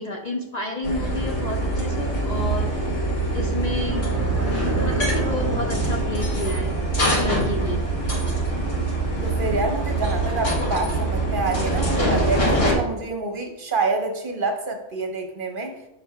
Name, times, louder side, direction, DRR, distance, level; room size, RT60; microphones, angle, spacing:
voice 1, 0.0-2.7 3.3-4.1 4.7-6.7 7.0-7.8, left 1 dB, 45° left, 1 dB, 0.6 m, -30 dB
sound 1, 0.8-12.7, right 2 dB, 80° left, 1.9 m, -24 dB
sound 2, 3.6-8.7, right 2 dB, 15° right, 0.6 m, -33 dB
voice 2, 9.2-15.8, right 3 dB, 50° right, 4 dB, 0.9 m, -27 dB
6.4 x 5.5 x 3.4 m, 0.97 s
omnidirectional pair, 1.3 m